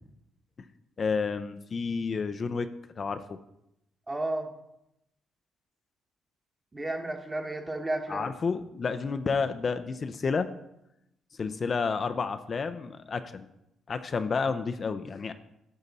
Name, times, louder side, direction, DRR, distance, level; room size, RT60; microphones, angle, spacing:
voice 1, 1.0-2.7 3.0-3.4 8.1-10.5 11.4-13.5 13.9-15.3, left 5 dB, 40° left, 9 dB, 0.4 m, -30 dB
voice 2, 4.1-4.5 6.7-8.3, right 2 dB, 20° right, 4 dB, 1.2 m, -32 dB
9.2 x 7.0 x 4.1 m, 0.85 s
cardioid pair, 90°, 0 cm